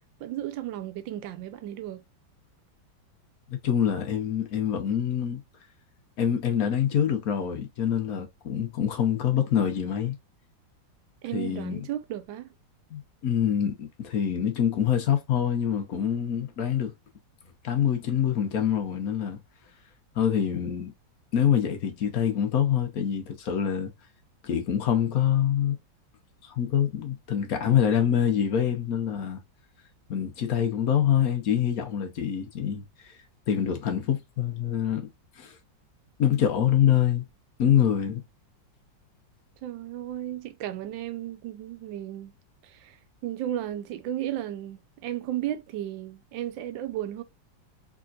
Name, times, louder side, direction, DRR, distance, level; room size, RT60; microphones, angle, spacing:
voice 1, 0.2-2.0 11.2-12.5 39.6-42.3 42.6-47.2, right 12 dB, 90° right, 1.3 m, -34 dB
voice 2, 3.5-5.4 6.2-10.2 11.3-11.8 12.9-16.9 17.6-19.4 20.1-20.9 21.3-23.9 24.4-25.7 26.4-29.4 30.1-33.1 33.5-35.1 35.4-35.6 36.2-37.2 37.6-38.2, left 9 dB, 55° left, 1.2 m, -25 dB
3.7 x 3.3 x 2.5 m
omnidirectional pair, 2.0 m